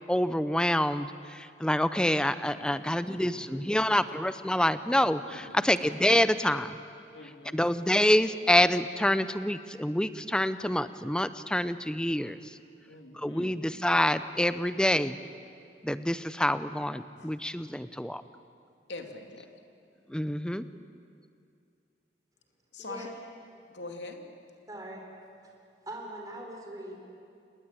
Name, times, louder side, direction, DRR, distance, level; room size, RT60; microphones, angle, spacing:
voice 1, 0.1-6.8 7.5-12.4 13.1-15.2 15.8-18.2 20.1-20.6, left 1 dB, 5° left, 13 dB, 0.6 m, -27 dB
voice 2, 2.4-4.0 4.5-4.6 5.0-5.1 5.4-5.7 7.1-7.6 12.9-13.6 17.2-17.3 18.9-19.5 22.7-23.1 23.7-24.3, left 2 dB, 85° left, 3 dB, 2.7 m, -45 dB
voice 3, 22.8-23.1 24.7-25.0 25.9-27.0, right 1 dB, 20° right, 0 dB, 4.1 m, -41 dB
28.5 x 20.0 x 9.0 m, 2.4 s
head